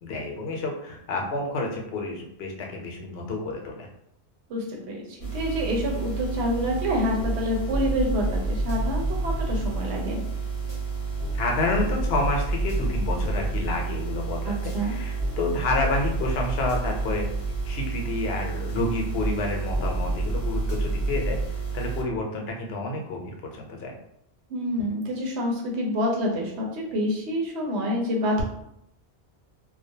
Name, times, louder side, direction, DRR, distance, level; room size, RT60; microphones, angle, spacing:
voice 1, 0.0-3.9 11.3-17.3 17.6-24.0, left 2 dB, 70° left, 0 dB, 0.8 m, -29 dB
voice 2, 4.5-10.2 14.4-14.9 24.5-28.4, equal, 80° right, -1 dB, 1.0 m, -27 dB
sound 1, 5.2-22.0, right 5 dB, 40° left, 0.5 m, -31 dB
sound 2, 7.2-7.4 7.7-9.8 10.7-10.8 11.2-11.4 11.7-13.8 14.7-14.8 15.2-15.4 15.7-17.8 18.7-19.4 19.7-21.5, right 1 dB, 25° right, 0.9 m, -29 dB
2.3 x 2.1 x 2.6 m, 0.77 s
omnidirectional pair, 1.1 m